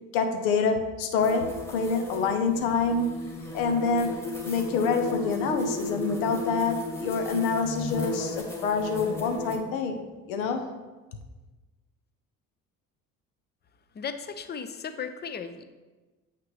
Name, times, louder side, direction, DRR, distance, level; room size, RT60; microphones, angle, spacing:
voice 1, 0.1-4.1 4.4-10.0 10.3-10.7, left 4 dB, 70° left, 5 dB, 0.9 m, -27 dB
sound 1, 1.2-9.6, left 2 dB, 5° left, 1.4 m, -35 dB
voice 2, 14.0-15.6, left 6 dB, 25° left, 10 dB, 0.6 m, -36 dB
7.8 x 5.8 x 3.2 m, 1.2 s
figure-of-eight pair, 55°, 43 cm